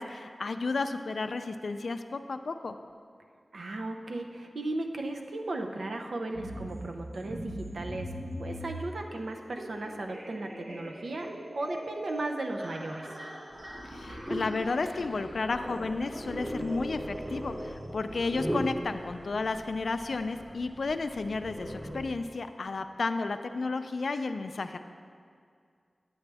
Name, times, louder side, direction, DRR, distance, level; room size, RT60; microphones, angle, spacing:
voice 1, 0.0-2.8 13.8-24.8, left 3 dB, 75° left, 9 dB, 0.4 m, -32 dB
voice 2, 3.5-8.1 8.4-11.3 11.5-13.1, right 2 dB, 80° right, 3 dB, 0.6 m, -36 dB
sound 1, 6.3-18.2, right 1 dB, 65° right, 1.1 m, -42 dB
sound 2, 13.5-22.0, equal, 20° right, 1.1 m, -38 dB
9.9 x 8.0 x 3.4 m, 2.2 s
wide cardioid pair, 90°, 0 cm